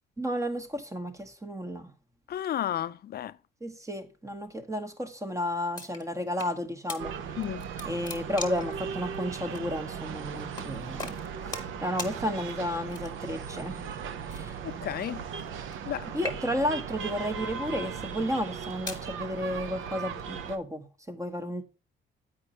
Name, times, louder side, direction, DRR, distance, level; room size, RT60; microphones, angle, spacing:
voice 1, 0.2-1.9 3.6-7.2 7.9-13.9 14.3-14.6 16.1-21.6, equal, 15° right, 1.2 m, -32 dB
voice 2, 2.3-3.4 7.4-7.7 14.3-15.2 15.9-16.1, left 11 dB, 50° left, 0.4 m, -33 dB
sound 1, 5.7-6.5 6.9-7.0 7.4-8.7 9.5-9.7 10.6-10.7 11.0-11.7 12.0-12.1 12.9-13.3 14.3-15.9 16.1-16.7 17.4-17.7 18.4-19.1, left 3 dB, 20° left, 1.6 m, -40 dB
sound 2, 7.0-20.6, right 7 dB, 80° right, 0.8 m, -38 dB
8.2 x 5.1 x 4.1 m
cardioid pair, 90°, 20 cm